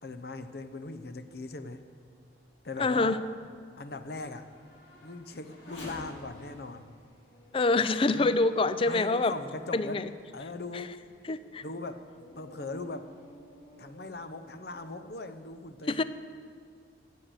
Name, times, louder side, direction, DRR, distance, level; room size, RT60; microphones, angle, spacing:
voice 1, 0.0-1.8 2.6-3.2 3.8-4.5 5.0-6.9 8.1-8.4 8.9-10.1 10.3-11.0 11.6-12.0 12.4-13.1 13.8-16.0, left 2 dB, 60° left, 10 dB, 0.8 m, -40 dB
Race car auto racing / Accelerating revving vroom, 1.8-9.4 10.0-10.1 10.7-15.5, left 1 dB, 80° left, 3.1 m, -52 dB
voice 2, 2.8-3.2 7.5-9.3 9.7-10.1 10.7-10.8 11.3-11.6 15.9-16.0, left 3 dB, 30° left, 14 dB, 0.4 m, -26 dB
16.0 x 6.5 x 8.2 m, 2.2 s
head